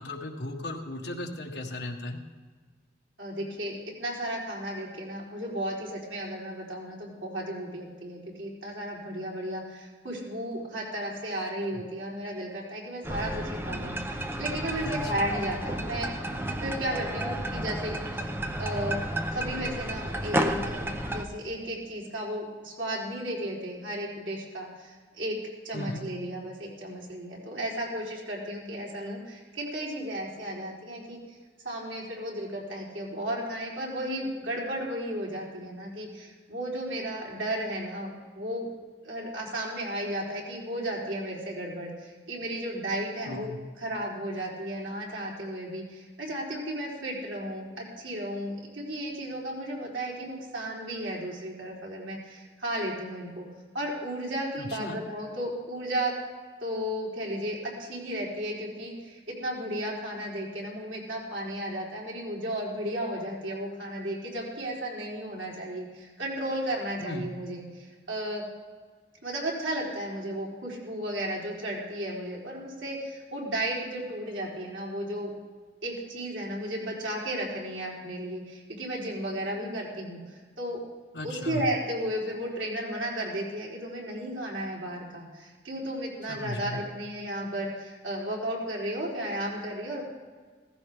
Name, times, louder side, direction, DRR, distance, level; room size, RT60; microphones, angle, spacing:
voice 1, 0.0-2.2 14.8-15.0 25.7-26.0 43.2-43.6 54.6-55.0 67.0-67.3 81.1-81.6 86.3-86.8, left 1 dB, 65° left, 2 dB, 1.5 m, -36 dB
voice 2, 3.2-16.1 16.6-18.0 18.6-19.0 19.3-25.4 25.6-31.4 31.6-38.7 39.0-53.4 53.7-56.2 56.6-68.4 69.2-75.3 75.8-80.8 81.2-90.0, right 1 dB, 90° right, -4 dB, 3.9 m, -34 dB
sound 1, 13.0-21.2, right 1 dB, 10° right, 0.8 m, -32 dB
15.5 x 15.0 x 3.6 m, 1.5 s
head